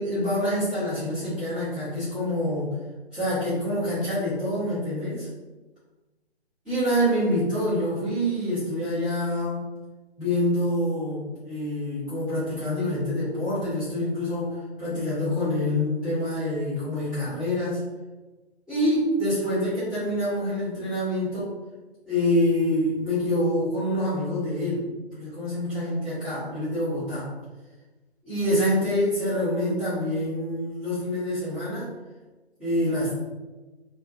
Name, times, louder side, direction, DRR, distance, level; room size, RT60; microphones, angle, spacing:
voice 1, 0.0-2.7 3.1-5.3 6.6-9.6 10.2-17.8 18.7-21.5 22.1-24.9 25.1-27.3 28.2-31.9 32.6-33.1, left 1 dB, ahead, -17 dB, 0.5 m, -26 dB
2.5 x 2.4 x 2.3 m, 1.2 s
figure-of-eight pair, 135°, 33 cm